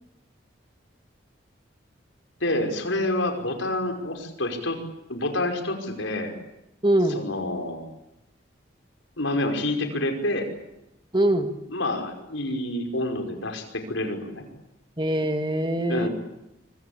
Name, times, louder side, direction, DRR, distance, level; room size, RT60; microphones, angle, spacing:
voice 1, 2.4-4.8 5.1-6.3 7.1-7.9 9.2-10.5 11.7-14.4 15.9-16.1, left 1 dB, 80° left, 4 dB, 5.4 m, -28 dB
voice 2, 6.8-7.2 11.1-11.5 15.0-16.1, right 1 dB, 25° right, 7 dB, 1.9 m, -23 dB
25.0 x 25.0 x 8.8 m, 0.90 s
head